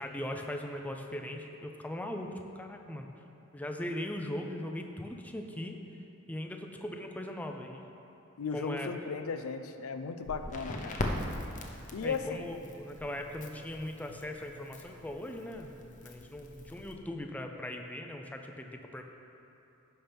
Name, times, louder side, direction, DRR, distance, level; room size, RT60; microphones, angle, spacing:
voice 1, 0.0-2.3 2.6-3.1 3.5-5.8 6.3-7.8 8.5-8.9 12.0-15.7 16.0-19.0, left 1 dB, 5° left, 3 dB, 0.5 m, -39 dB
voice 2, 8.4-11.0 11.9-12.5, left 5 dB, 85° left, 8 dB, 0.5 m, -36 dB
Crackle, 10.2-16.9, left 1 dB, 40° left, 0.8 m, -41 dB
16.0 x 5.9 x 3.5 m, 2.8 s
head